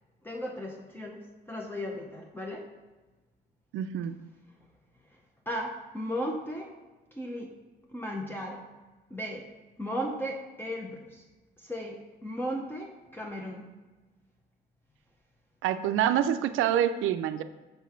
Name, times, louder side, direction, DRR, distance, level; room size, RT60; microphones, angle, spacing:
voice 1, 0.2-2.7 5.5-6.7 7.1-7.5 7.9-8.7 9.1-9.5 9.8-11.2 11.6-13.7, equal, 10° left, 0 dB, 0.7 m, -36 dB
voice 2, 3.7-4.1 15.6-17.4, right 10 dB, 85° right, 11 dB, 0.4 m, -26 dB
6.7 x 3.0 x 5.7 m, 1.2 s
cardioid pair, 90°, 20 cm